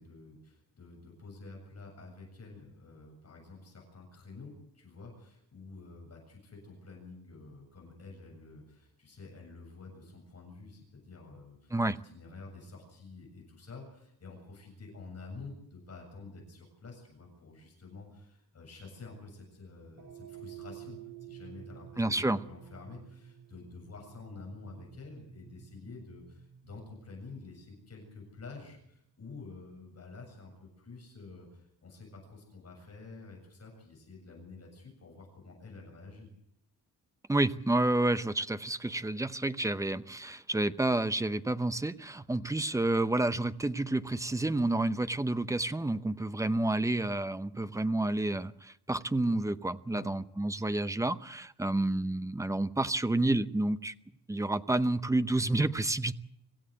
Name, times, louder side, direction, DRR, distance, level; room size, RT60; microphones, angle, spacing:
voice 1, 0.0-11.8 12.0-36.3 49.9-50.1, left 3 dB, 40° left, 7.5 m, -49 dB
sound 1, 19.9-28.4, right 10 dB, 60° right, 3.0 m, -51 dB
voice 2, 22.0-22.4 37.3-53.9 54.3-56.1, right 2 dB, 10° right, 0.7 m, -29 dB
26.0 x 15.0 x 7.9 m
wide cardioid pair, 155°, 39 cm